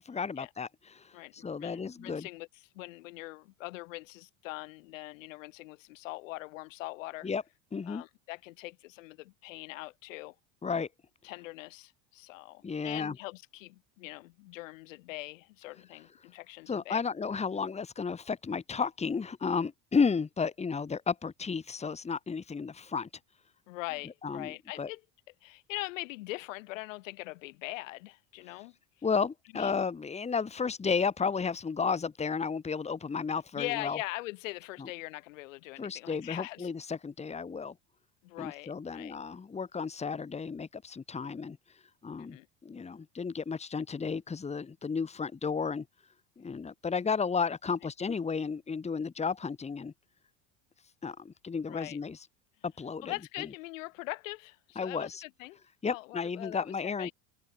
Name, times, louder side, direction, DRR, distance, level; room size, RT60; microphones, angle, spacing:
voice 1, 0.1-2.3 7.2-7.4 7.7-8.0 10.6-10.9 12.6-13.2 16.7-23.1 24.2-24.9 29.0-34.0 34.8-34.9 35.8-37.7 38.4-41.6 42.0-45.9 46.4-49.9 51.0-52.2 52.6-53.1 54.8-55.2 55.8-57.1, left 5 dB, 15° left, 2.2 m, -33 dB
voice 2, 1.1-2.5 2.7-7.3 7.9-10.4 11.2-17.0 23.7-25.0 25.4-28.8 29.5-29.9 33.6-36.7 38.2-39.2 42.2-42.5 51.7-52.0 53.0-55.6 55.9-57.1, left 20 dB, 85° left, 5.1 m, -42 dB
supercardioid pair, 120°, 38 cm